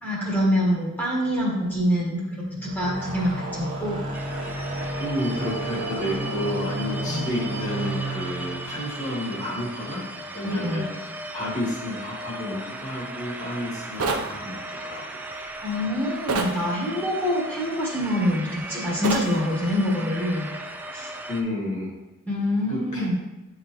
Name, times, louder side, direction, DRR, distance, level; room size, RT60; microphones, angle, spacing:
voice 1, 0.0-4.0 7.0-7.3 10.4-10.9 15.6-20.5 20.9-21.1 22.3-23.2, left 1 dB, 10° left, -5 dB, 1.3 m, -25 dB
sound 1, 2.5-9.9, right 2 dB, 60° right, 1.4 m, -32 dB
sound 2, 4.1-21.4, right 1 dB, 10° right, 0.3 m, -37 dB
voice 2, 5.0-10.0 10.3-15.2 21.3-21.9 22.7-23.2, left 1 dB, 35° left, -4 dB, 1.8 m, -31 dB
sound 3, 14.0-14.3 16.3-16.6 19.0-19.3, right 4 dB, 85° right, 0.6 m, -25 dB
9.2 x 3.8 x 3.0 m, 0.99 s
head